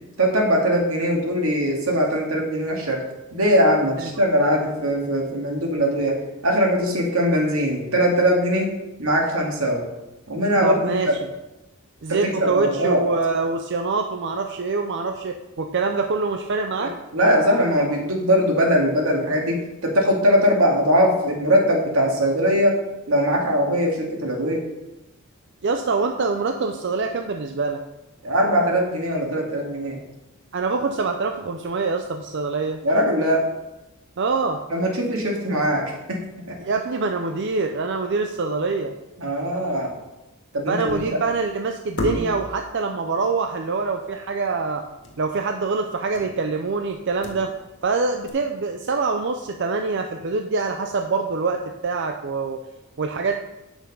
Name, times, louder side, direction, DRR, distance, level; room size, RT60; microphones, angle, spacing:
voice 1, 0.2-3.0 3.3-8.7 9.0-9.8 10.3-11.1 12.1-13.0 16.8-22.8 23.1-24.7 28.2-30.0 32.8-33.5 34.7-36.2 36.5-36.6 39.2-39.9 40.5-41.0, equal, 85° right, 0 dB, 2.2 m, -21 dB
voice 2, 10.6-11.1 12.0-16.9 25.6-27.8 30.5-32.8 34.2-34.6 36.6-38.9 40.7-44.8 45.2-47.5 47.8-52.6 53.0-53.3, right 4 dB, 60° right, 5 dB, 0.6 m, -25 dB
sound 1, 40.9-41.3 42.0-42.6 45.0-45.3 45.5-45.6 46.1-46.5 46.9-47.8 48.3-48.4, equal, 55° left, 2.0 m, -31 dB
8.6 x 6.1 x 5.4 m, 0.97 s
head